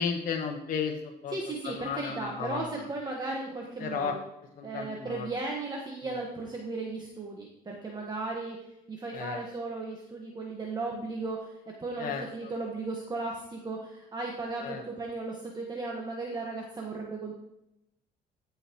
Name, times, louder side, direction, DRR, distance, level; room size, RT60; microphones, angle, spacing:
voice 1, 0.0-1.3 1.6-2.9 3.8-4.2 4.6-5.3 6.0-6.2 9.1-9.4 12.0-12.5 14.6-14.8, left 6 dB, 55° left, 2 dB, 1.0 m, -34 dB
voice 2, 1.3-4.2 4.6-8.6 8.9-17.3, right 3 dB, 25° right, -1 dB, 1.3 m, -36 dB
13.5 x 5.7 x 3.0 m, 0.84 s
cardioid pair, 110°, 17 cm